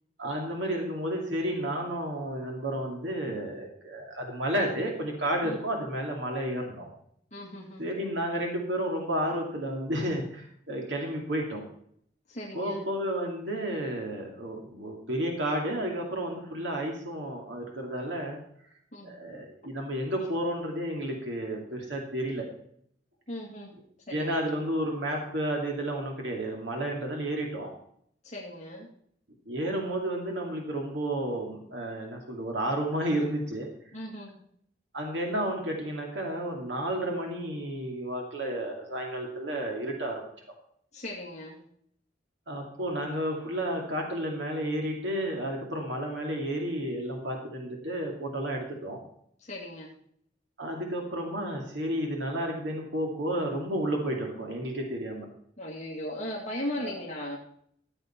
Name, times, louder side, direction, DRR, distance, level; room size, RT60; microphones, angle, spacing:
voice 1, 0.2-6.9 7.8-11.6 12.5-18.4 19.0-22.5 24.1-27.7 29.5-33.7 34.9-40.3 42.5-49.0 50.6-55.3 56.8-56.9, right 1 dB, 85° right, 1 dB, 2.5 m, -31 dB
voice 2, 7.3-7.9 12.3-12.8 18.9-19.2 23.3-23.7 24.1-24.5 28.2-28.9 33.9-34.4 40.9-41.6 49.4-49.9 55.6-57.4, left 1 dB, 40° left, -3 dB, 2.3 m, -37 dB
14.5 x 8.2 x 4.5 m, 0.66 s
head